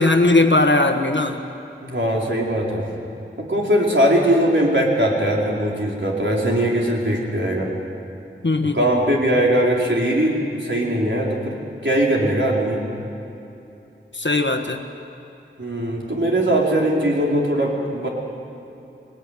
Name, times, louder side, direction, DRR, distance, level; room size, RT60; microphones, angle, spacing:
voice 1, 0.0-1.4 8.4-8.9 14.1-14.8, left 2 dB, 60° left, 4 dB, 1.5 m, -18 dB
voice 2, 1.8-2.9 3.4-7.7 8.6-12.9 15.6-18.1, right 1 dB, 65° right, -3 dB, 4.5 m, -20 dB
23.5 x 19.5 x 9.5 m, 2.9 s
wide cardioid pair, 40°, 21 cm